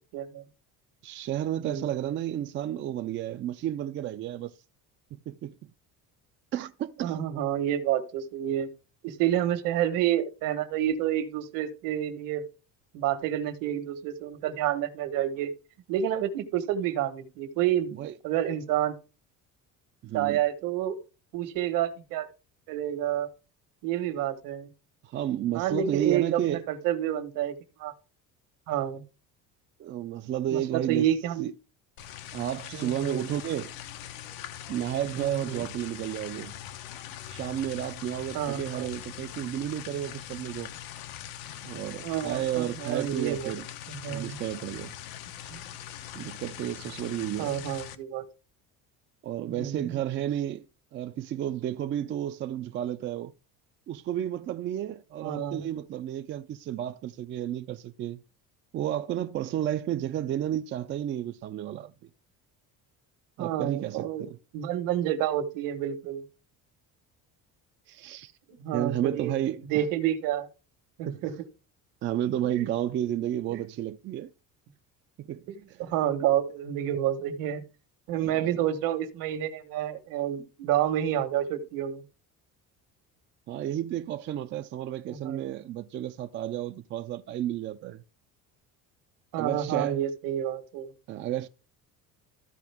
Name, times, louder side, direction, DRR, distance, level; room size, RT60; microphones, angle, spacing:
voice 1, 0.1-0.4 1.6-1.9 7.0-8.7 9.0-12.4 12.9-15.5 15.9-18.9 20.1-21.0 21.3-22.3 22.7-23.3 23.8-24.7 25.5-27.5 27.8-27.9 28.7-29.0 30.5-31.5 32.7-33.3 35.2-35.6 38.3-38.9 42.0-43.5 43.9-44.4 45.5-45.6 47.4-48.3 49.5-50.0 55.2-55.6 63.4-64.3 64.5-66.2 68.5-69.3 69.7-70.5 71.0-71.3 72.4-72.7 75.8-77.6 78.1-82.0 85.1-85.5 89.3-90.9, right 11 dB, 70° right, 1.5 m, -29 dB
voice 2, 1.0-4.5 5.1-5.7 6.5-7.2 18.0-18.1 20.0-20.4 25.0-26.6 29.8-31.1 31.4-31.5 32.3-33.8 34.7-36.6 37.3-40.7 41.6-43.7 44.1-45.0 46.1-47.6 49.2-50.7 50.9-53.3 53.9-58.2 58.7-62.1 63.4-64.4 67.9-68.3 68.7-69.8 71.1-71.3 72.0-74.3 75.2-75.8 78.2-78.5 83.5-88.0 89.4-90.0 91.1-91.5, right 11 dB, 35° right, 0.4 m, -32 dB
sound 1, 32.0-48.0, left 11 dB, 90° left, 1.0 m, -42 dB
14.0 x 5.0 x 3.5 m
cardioid pair, 170°, 35 cm